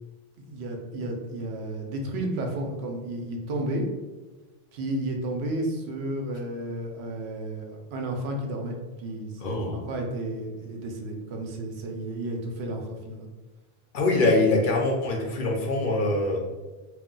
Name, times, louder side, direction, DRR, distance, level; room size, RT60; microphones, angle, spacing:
voice 1, 0.4-3.8 4.7-13.3, right 1 dB, 90° right, 2 dB, 0.8 m, -32 dB
voice 2, 9.4-9.8 13.9-16.4, left 2 dB, 60° left, 0 dB, 0.7 m, -23 dB
2.3 x 2.2 x 3.7 m, 1.2 s
omnidirectional pair, 1.1 m